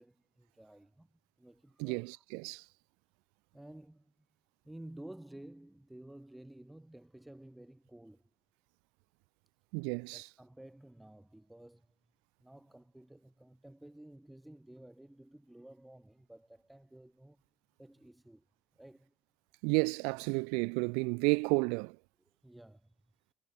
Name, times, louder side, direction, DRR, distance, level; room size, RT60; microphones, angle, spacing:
voice 1, 0.0-2.2 3.5-4.1 4.6-8.3 10.1-11.9 12.4-17.4 17.8-18.4 18.7-19.1 22.4-22.9, right 1 dB, 5° right, 1.4 m, -53 dB
voice 2, 1.8-2.6 9.7-10.3 19.6-22.0, right 35 dB, 90° right, 0.5 m, -31 dB
cardioid pair, 120°, 0 cm